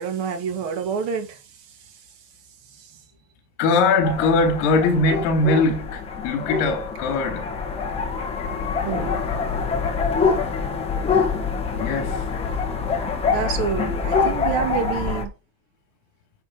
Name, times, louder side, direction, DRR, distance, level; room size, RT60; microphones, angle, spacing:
voice 1, 0.0-1.4 2.8-2.9 8.8-9.2 13.3-15.3, right 7 dB, 60° right, 2.6 m, -27 dB
voice 2, 3.6-7.5 11.7-12.3, left 3 dB, 65° left, 3.4 m, -21 dB
sound 1, 4.0-15.2, left 5 dB, 15° left, 1.3 m, -25 dB
9.7 x 4.4 x 4.4 m
cardioid pair, 170°, 41 cm